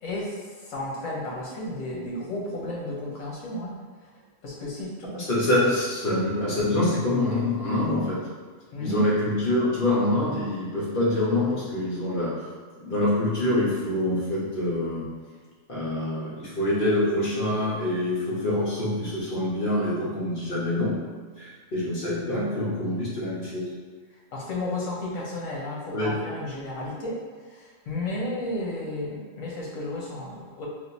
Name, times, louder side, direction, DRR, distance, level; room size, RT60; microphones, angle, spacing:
voice 1, 0.0-3.8 4.4-5.2 8.7-9.1 24.3-27.2 27.5-30.7, left 1 dB, 75° left, -4 dB, 1.2 m, -33 dB
voice 2, 5.3-8.2 8.8-12.3 12.8-15.1 15.7-20.9 21.4-23.6 25.9-26.1, left 1 dB, 45° left, -7 dB, 1.0 m, -25 dB
3.6 x 2.6 x 2.6 m, 1.5 s
omnidirectional pair, 1.4 m